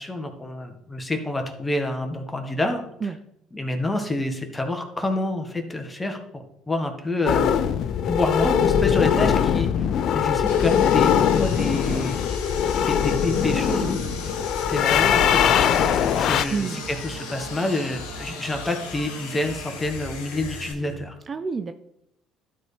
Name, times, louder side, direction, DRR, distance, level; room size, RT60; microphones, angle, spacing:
voice 1, 0.0-2.8 3.5-7.4 8.0-9.7 10.1-12.2 12.9-14.4 14.7-21.1, left 2 dB, 15° left, 5 dB, 1.6 m, -28 dB
sound 1, 7.3-16.4, left 8 dB, 60° left, 0.4 m, -21 dB
Sawing, 10.5-20.7, left 6 dB, 80° left, 1.1 m, -38 dB
sound 2, 13.6-21.0, right 3 dB, 85° right, 1.7 m, -40 dB
voice 2, 16.5-16.9 21.3-21.7, right 5 dB, 35° right, 9 dB, 0.5 m, -28 dB
12.5 x 4.3 x 3.4 m, 0.78 s
hypercardioid pair, 65°, 0 cm